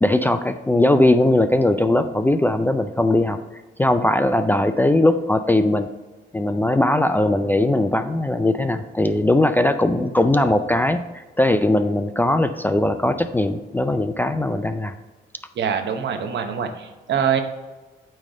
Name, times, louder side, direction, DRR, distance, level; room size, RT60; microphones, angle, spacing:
voice 1, 0.0-3.4 3.8-5.9 6.3-14.9, left 1 dB, 10° left, 9 dB, 0.3 m, -19 dB
voice 2, 15.6-17.4, right 7 dB, 65° right, 7 dB, 0.9 m, -24 dB
8.9 x 3.2 x 5.4 m, 1.2 s
cardioid pair, 90°, 20 cm